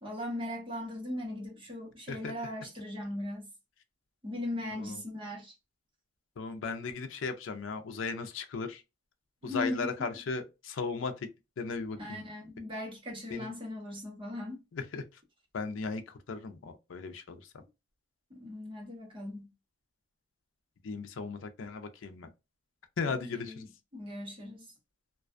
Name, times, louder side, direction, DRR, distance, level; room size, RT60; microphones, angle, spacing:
voice 1, 0.0-3.5 4.2-5.5 9.4-9.9 12.0-14.6 18.3-19.5 23.1-23.7 23.9-24.7, left 1 dB, 25° right, 1.0 m, -38 dB
voice 2, 6.4-8.8 9.4-11.3 11.6-12.2 13.3-13.5 14.7-15.0 15.5-17.4 20.8-22.3 23.0-23.7, left 4 dB, 85° left, 0.5 m, -36 dB
2.4 x 2.2 x 2.4 m
head